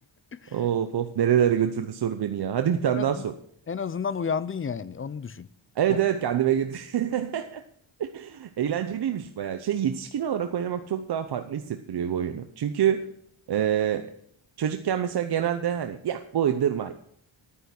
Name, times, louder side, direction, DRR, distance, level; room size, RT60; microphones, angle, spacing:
voice 1, 0.5-3.3 5.8-7.6 8.0-13.1 13.5-14.1 14.6-16.9, right 9 dB, 50° right, 8 dB, 0.8 m, -26 dB
voice 2, 2.9-3.2 3.7-5.5 5.9-6.0, left 6 dB, 25° left, 17 dB, 0.4 m, -31 dB
10.5 x 9.9 x 5.9 m, 0.65 s
wide cardioid pair, 130°, 49 cm